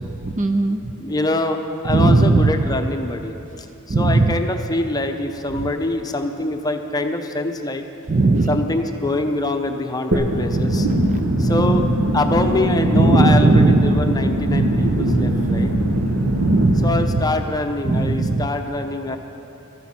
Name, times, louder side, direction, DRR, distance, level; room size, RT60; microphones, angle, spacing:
voice 1, 0.0-0.8 1.9-2.7 3.9-4.4 5.5-5.7 8.1-8.7 10.5-11.2 11.5-11.6 12.9-14.0 16.4-17.2 17.8-18.5, right 2 dB, 35° right, 8 dB, 0.5 m, -18 dB
voice 2, 1.0-3.7 4.0-7.8 8.5-10.9 11.4-11.8 12.1-15.7 16.8-19.2, left 2 dB, 20° left, 5 dB, 0.7 m, -24 dB
sound 1, 10.1-17.1, right 1 dB, 65° right, 1.4 m, -20 dB
19.5 x 13.0 x 4.3 m, 2.8 s
head